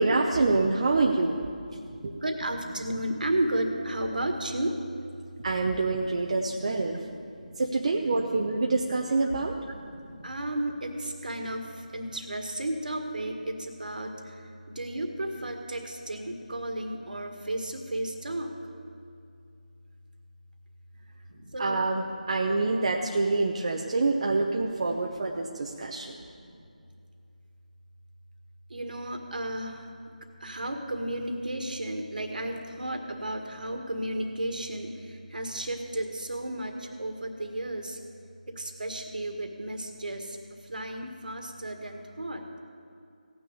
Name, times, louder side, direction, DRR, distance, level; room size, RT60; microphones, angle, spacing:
voice 1, 0.0-1.4 2.0-2.1 5.4-7.1 7.6-9.6 21.6-26.2, right 3 dB, 45° right, 1 dB, 0.8 m, -26 dB
voice 2, 1.6-4.8 5.7-7.6 7.9-8.0 9.2-9.3 9.7-18.5 21.3-21.8 25.4-26.1 26.4-26.6 28.7-29.9 30.4-38.0 38.5-42.5, right 1 dB, 70° right, 4 dB, 1.8 m, -34 dB
16.5 x 6.3 x 8.5 m, 2.5 s
figure-of-eight pair, 165°, 5 cm